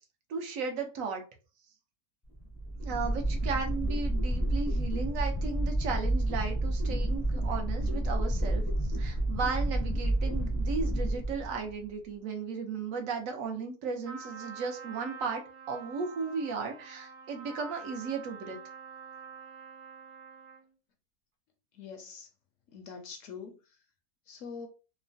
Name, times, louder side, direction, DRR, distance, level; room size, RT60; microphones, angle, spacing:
voice 1, 0.3-1.2 2.8-8.6 9.0-15.4 15.7-18.6, right 5 dB, 70° right, 0.9 m, -35 dB
sound 1, 2.3-11.8, right 1 dB, 20° left, 0.4 m, -30 dB
Trumpet, 14.0-20.7, right 5 dB, 85° right, 1.2 m, -47 dB
voice 2, 21.7-22.3 22.7-23.6 24.3-24.7, left 5 dB, 70° left, 0.8 m, -44 dB
3.0 x 2.0 x 2.5 m
omnidirectional pair, 1.6 m